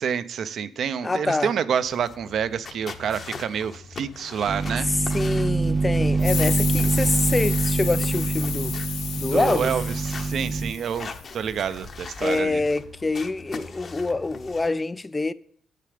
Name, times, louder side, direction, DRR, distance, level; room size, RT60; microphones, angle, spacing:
voice 1, 0.0-4.9 9.3-12.6, right 7 dB, 60° right, 0.6 m, -28 dB
voice 2, 1.0-1.5 5.1-8.7 9.1-9.7 12.2-15.3, left 3 dB, 20° left, 0.3 m, -26 dB
sound 1, 1.8-14.7, left 4 dB, 45° left, 0.9 m, -42 dB
sound 2, 4.5-10.7, right 4 dB, 20° right, 0.6 m, -25 dB
sound 3, 6.2-11.5, left 9 dB, 85° left, 0.7 m, -32 dB
7.6 x 6.7 x 5.0 m
cardioid pair, 90°, 0 cm